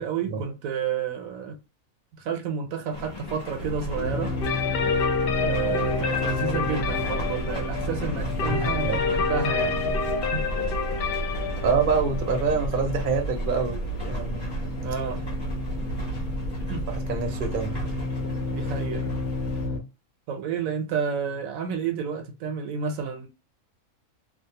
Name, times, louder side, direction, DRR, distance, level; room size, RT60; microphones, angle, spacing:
voice 1, 0.0-1.6 2.2-4.3 5.4-9.9 10.3-10.5 14.8-15.2 16.7-16.8 18.5-19.1 20.3-23.3, right 6 dB, 80° right, 1.0 m, -30 dB
sound 1, 2.9-19.7, left 2 dB, 20° left, 0.9 m, -39 dB
sound 2, 3.6-19.8, equal, 85° left, 1.3 m, -31 dB
sound 3, 4.4-14.1, left 5 dB, 65° left, 0.6 m, -29 dB
voice 2, 8.4-9.0 11.6-13.8 14.1-14.5 16.9-17.9, right 5 dB, 50° right, 0.7 m, -26 dB
2.7 x 2.0 x 2.7 m
omnidirectional pair, 1.4 m